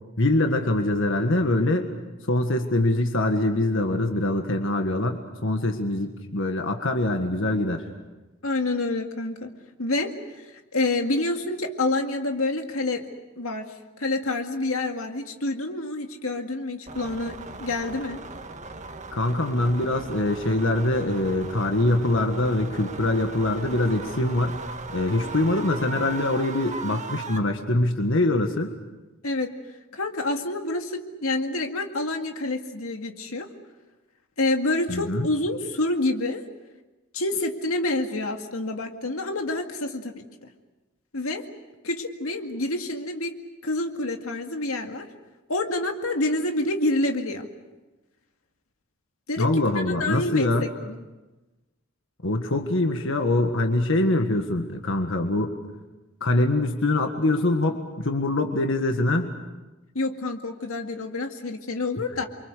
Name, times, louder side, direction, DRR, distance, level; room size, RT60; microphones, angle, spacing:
voice 1, 0.2-1.9 2.3-7.8 19.1-24.6 24.9-28.7 34.9-35.3 49.4-50.7 52.2-55.6 56.2-59.3, left 2 dB, 65° left, 5 dB, 1.7 m, -24 dB
voice 2, 8.4-9.5 9.8-10.1 10.7-13.1 13.4-13.7 14.0-18.2 29.2-29.5 29.9-33.5 34.4-36.4 37.1-40.2 41.1-41.5 41.8-43.4 43.6-45.1 45.5-47.5 49.3-51.0 59.9-62.3, left 2 dB, 90° left, 4 dB, 2.2 m, -27 dB
sound 1, 16.9-27.4, right 3 dB, 35° right, 1.6 m, -38 dB
28.5 x 24.5 x 6.7 m, 1.1 s
head